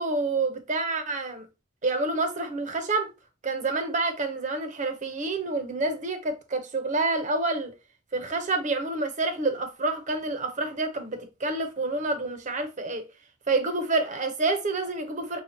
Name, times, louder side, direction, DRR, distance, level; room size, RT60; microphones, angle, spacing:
voice 1, 0.0-1.5 1.8-3.1 3.4-7.7 8.1-13.0 13.5-15.4, right 3 dB, 40° right, 0.8 m, -28 dB
5.7 x 2.3 x 2.8 m
head